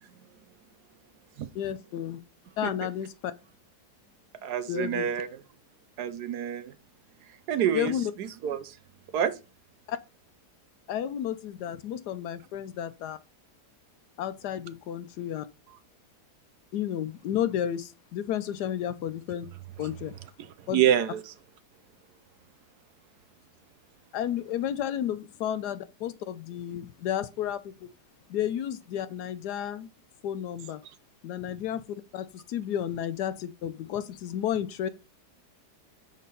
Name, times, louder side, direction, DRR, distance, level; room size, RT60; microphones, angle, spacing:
voice 1, 1.5-2.2 2.6-3.3 4.7-5.1 7.7-8.1 9.9-10.0 10.9-13.2 14.2-15.5 16.7-19.5 19.8-20.1 20.7-20.8 24.1-27.9 28.3-29.9 30.2-30.8 31.2-31.8 32.1-34.9, left 10 dB, 80° left, 1.2 m, -32 dB
voice 2, 4.4-5.4 6.0-6.7 7.5-7.9 8.2-8.8 9.1-9.4 20.6-21.3, right 10 dB, 75° right, 1.3 m, -27 dB
6.5 x 5.4 x 5.3 m
omnidirectional pair, 1.7 m